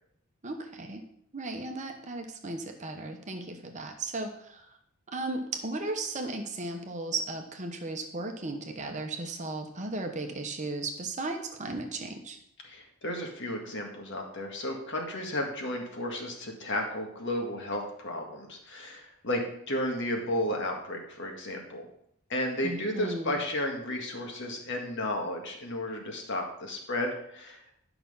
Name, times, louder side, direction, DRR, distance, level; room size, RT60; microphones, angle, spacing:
voice 1, 0.4-1.0 1.3-4.8 5.1-12.4 22.6-23.4, right 2 dB, 35° right, 4 dB, 1.0 m, -35 dB
voice 2, 12.6-19.4 19.7-21.9 22.3-27.6, left 1 dB, 55° left, 2 dB, 1.9 m, -33 dB
11.0 x 5.9 x 5.6 m, 0.72 s
head